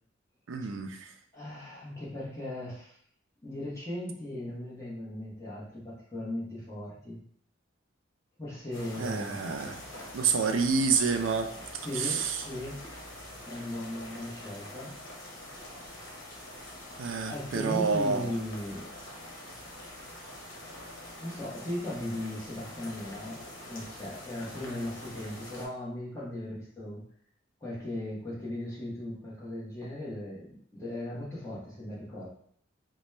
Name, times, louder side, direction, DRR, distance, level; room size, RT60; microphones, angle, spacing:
voice 1, 0.5-1.1 9.0-9.8 10.1-11.5 11.9-12.4 17.0-18.3, right 5 dB, 75° right, 6 dB, 0.4 m, -28 dB
voice 2, 1.3-3.0 3.4-7.2 8.4-9.5 11.8-12.8 13.4-15.0 16.7-16.8 17.3-19.6 21.2-27.0 27.6-32.3, left 1 dB, 15° left, -6 dB, 1.1 m, -38 dB
sound 1, 8.7-25.6, left 1 dB, 70° left, 1.1 m, -45 dB
4.1 x 2.2 x 3.2 m, 0.63 s
head